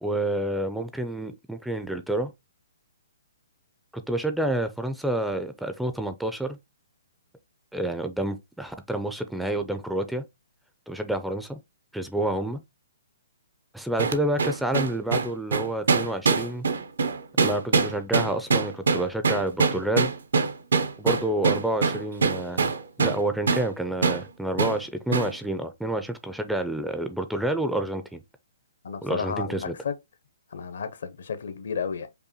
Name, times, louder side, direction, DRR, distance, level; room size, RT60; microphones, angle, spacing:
voice 1, 0.0-2.3 4.1-6.6 7.7-10.2 10.9-11.6 11.9-12.6 13.7-16.7 17.4-20.1 21.0-22.7 23.0-28.2 29.0-29.7, right 1 dB, ahead, 0.3 m, -28 dB
sound 1, 14.0-23.2 23.5-23.7 24.0-24.2 24.6-24.8 25.1-25.3, right 4 dB, 85° right, 0.7 m, -23 dB
voice 2, 28.8-29.9 30.5-32.1, left 6 dB, 70° left, 0.7 m, -32 dB
5.3 x 2.2 x 2.8 m
hypercardioid pair, 160°, 0 cm